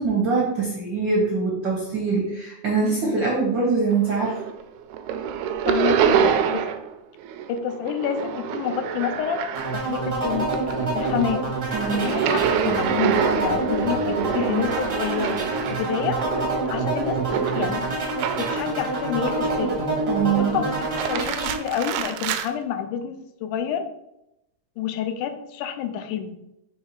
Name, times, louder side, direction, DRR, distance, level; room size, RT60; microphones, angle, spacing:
voice 1, 0.0-4.4 11.7-12.1 20.1-20.6, right 4 dB, 65° right, -2 dB, 1.1 m, -23 dB
sound 1, 3.9-4.6 4.9-6.9 7.2-10.1 10.4-18.8 19.3-19.9 20.8-22.5, right 8 dB, 80° right, 1.8 m, -27 dB
voice 2, 5.7-6.6 7.5-9.5 9.7-10.6 10.9-11.5 11.9-15.4 15.7-16.2 16.7-17.2 17.5-18.1 18.4-19.8 20.4-23.9 24.8-26.4, left 8 dB, 85° left, 8 dB, 2.1 m, -28 dB
sound 2, 9.5-21.6, right 2 dB, 50° right, 0.7 m, -27 dB
6.3 x 3.3 x 4.7 m, 0.85 s
omnidirectional pair, 3.5 m